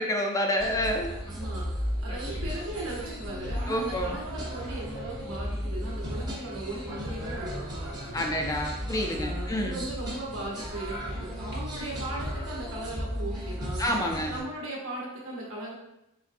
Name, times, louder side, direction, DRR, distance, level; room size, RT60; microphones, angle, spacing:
voice 1, 0.0-1.1 3.7-4.2 8.1-9.8 13.8-14.3, equal, 15° left, 2 dB, 0.4 m, -28 dB
sound 1, 0.6-14.4, equal, 20° right, 0.8 m, -35 dB
voice 2, 1.3-1.7 2.0-8.2 9.0-13.9 14.3-15.7, right 1 dB, 70° right, -3 dB, 1.0 m, -38 dB
4.1 x 3.3 x 2.5 m, 0.91 s
head